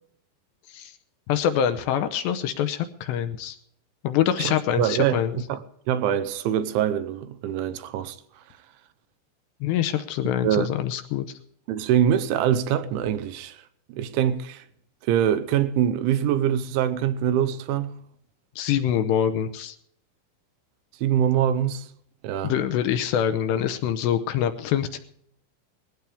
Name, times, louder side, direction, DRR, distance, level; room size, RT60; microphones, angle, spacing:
voice 1, 1.3-3.6 4.0-5.4 9.6-11.4 18.6-19.8 22.4-25.0, left 9 dB, 75° left, 2.7 m, -25 dB
voice 2, 4.4-5.6 5.9-8.2 10.4-10.7 11.7-13.6 13.9-14.6 15.1-17.9 21.0-21.9 22.2-22.5, right 10 dB, 85° right, 3.2 m, -24 dB
20.0 x 16.5 x 3.4 m
omnidirectional pair, 5.5 m